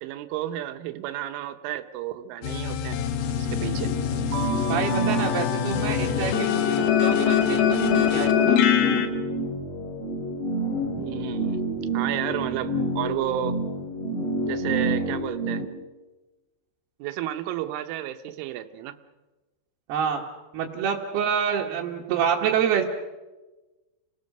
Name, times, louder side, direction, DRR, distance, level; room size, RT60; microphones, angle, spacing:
voice 1, 0.0-3.0 3.4-3.9 11.0-11.6 11.9-13.6 14.5-15.6 17.0-19.0, right 12 dB, 85° right, 9 dB, 3.4 m, -32 dB
sound 1, 2.4-9.1, left 10 dB, 65° left, 2.6 m, -24 dB
sound 2, 3.2-15.6, right 1 dB, 45° left, 3.7 m, -29 dB
Keyboard (musical), 4.3-6.9, right 12 dB, 45° right, 3.3 m, -39 dB
voice 2, 4.7-9.1 19.9-20.2 20.5-22.9, right 8 dB, 65° right, -2 dB, 3.1 m, -27 dB
30.0 x 19.0 x 6.6 m, 1.1 s
omnidirectional pair, 5.5 m